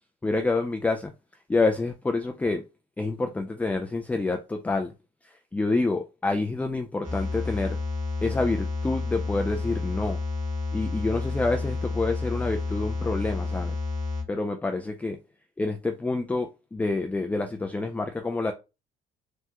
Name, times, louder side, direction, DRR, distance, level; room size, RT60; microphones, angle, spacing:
voice 1, 0.2-1.1 1.5-2.6 3.0-4.9 5.2-7.8 8.2-10.2 10.7-13.7 14.3-15.2 15.6-18.5, left 3 dB, 10° left, 0.3 m, -27 dB
sound 1, 7.0-14.2, left 3 dB, 40° right, 1.4 m, -30 dB
3.5 x 2.1 x 2.8 m
cardioid pair, 110°, 17 cm